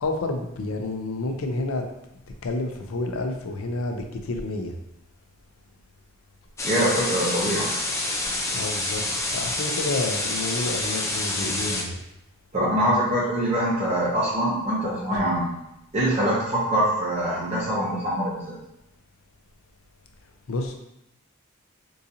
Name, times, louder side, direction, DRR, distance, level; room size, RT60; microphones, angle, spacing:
voice 1, 0.0-1.9 2.4-4.7 8.2-12.0 15.1-15.3 20.5-20.7, left 2 dB, 80° left, 4 dB, 0.5 m, -30 dB
sound 1, 6.6-11.8, left 2 dB, 15° left, 0.3 m, -27 dB
voice 2, 6.6-7.7 12.5-15.4 15.9-18.5, right 1 dB, 30° right, -7 dB, 0.7 m, -24 dB
3.8 x 2.7 x 2.5 m, 0.85 s
head